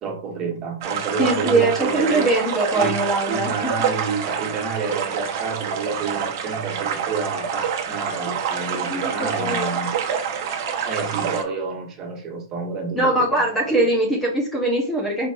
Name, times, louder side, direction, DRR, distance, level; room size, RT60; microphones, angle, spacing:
voice 1, 0.0-2.3 2.7-3.0 3.3-10.0 10.8-13.4, right 4 dB, 25° right, 1.7 m, -29 dB
sound 1, 0.8-11.4, right 7 dB, 45° right, 1.0 m, -27 dB
voice 2, 1.2-3.7 8.9-9.8 13.0-15.3, right 2 dB, 10° left, 1.1 m, -22 dB
4.7 x 4.0 x 2.7 m
hypercardioid pair, 130°, 2 cm